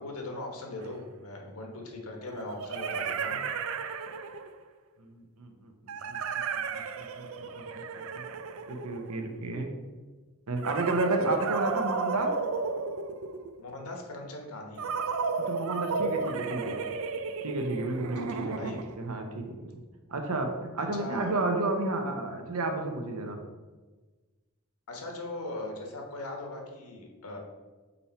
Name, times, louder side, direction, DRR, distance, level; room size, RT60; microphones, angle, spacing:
voice 1, 0.0-3.4 13.6-14.9 18.2-18.8 20.8-21.4 24.9-27.4, left 2 dB, 85° left, 2 dB, 1.2 m, -40 dB
sound 1, 0.8-0.9 2.3-4.6 5.9-9.4 10.6-13.6 14.8-19.1, right 5 dB, 70° right, 0.4 m, -33 dB
voice 2, 5.0-6.2 6.5-7.8 8.1-8.2 8.7-9.7 10.5-12.4 15.5-16.8 17.4-18.6 19.0-19.7 20.1-23.4, right 2 dB, 90° right, 4 dB, 0.9 m, -32 dB
5.4 x 4.3 x 4.3 m, 1.3 s
head